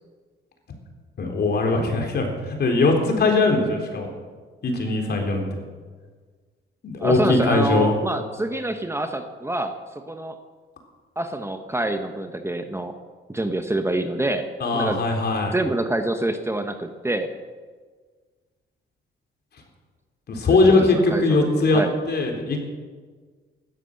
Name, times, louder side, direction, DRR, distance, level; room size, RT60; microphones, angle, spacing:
voice 1, 1.2-2.3 2.6-4.1 4.6-5.4 6.8-8.0 14.6-15.5 20.3-21.8 22.1-22.6, left 3 dB, 55° left, 2 dB, 4.0 m, -20 dB
voice 2, 7.0-9.7 10.0-10.4 11.2-12.9 13.3-15.0 15.5-17.3 20.9-21.9, right 1 dB, 15° right, 7 dB, 1.2 m, -26 dB
16.0 x 13.0 x 6.7 m, 1.5 s
cardioid pair, 90°, 20 cm